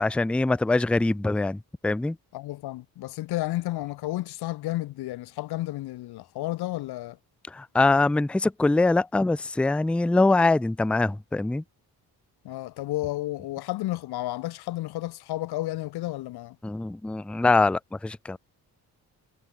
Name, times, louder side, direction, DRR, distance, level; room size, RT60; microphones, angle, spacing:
voice 1, 0.0-2.2 7.5-11.6 16.6-18.4, left 2 dB, 5° left, 0.4 m, -23 dB
voice 2, 2.3-7.2 12.4-16.6, left 16 dB, 90° left, 0.7 m, -32 dB
cardioid pair, 90°, 37 cm